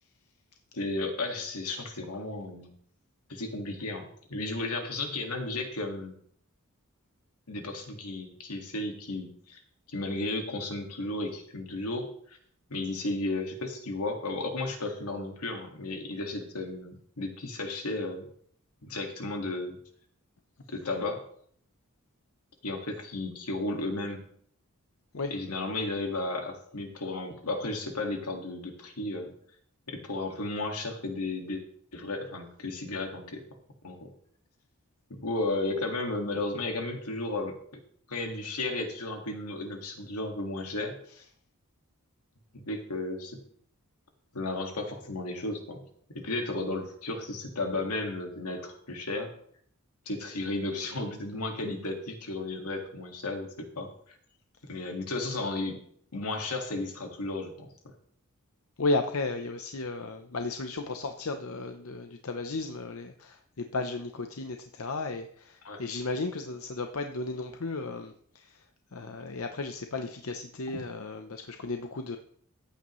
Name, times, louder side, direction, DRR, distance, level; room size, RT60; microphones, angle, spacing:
voice 1, 0.7-2.7 3.3-6.2 7.5-9.6 9.9-12.4 12.7-18.3 18.8-19.8 20.7-21.2 22.6-24.2 25.3-29.3 29.9-31.6 31.9-33.4 33.8-34.1 35.1-37.8 38.1-41.0 42.5-43.4 44.3-45.8 46.1-49.3 50.1-53.9 54.6-55.8 56.1-57.7 65.6-65.8, left 2 dB, 90° left, 4 dB, 1.9 m, -34 dB
voice 2, 58.8-68.6 68.9-72.2, left 3 dB, 70° left, 6 dB, 0.7 m, -34 dB
14.5 x 8.8 x 3.1 m, 0.62 s
head